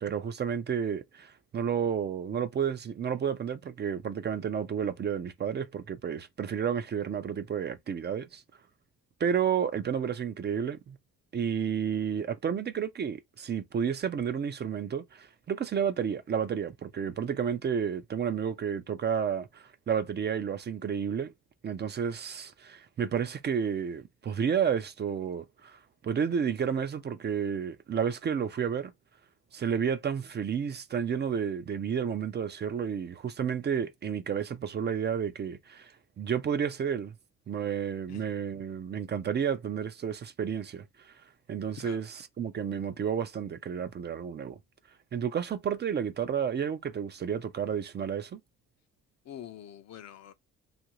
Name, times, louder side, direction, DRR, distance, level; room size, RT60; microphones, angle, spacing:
voice 1, 0.0-8.4 9.2-11.0 11.3-21.3 21.6-25.8 26.0-28.9 29.5-37.1 37.5-40.8 41.5-42.1 42.4-44.6 45.1-48.4, right 7 dB, 35° right, 0.4 m, -31 dB
voice 2, 49.2-50.3, left 10 dB, 60° left, 0.6 m, -45 dB
2.7 x 2.5 x 2.9 m
cardioid pair, 90°, 30 cm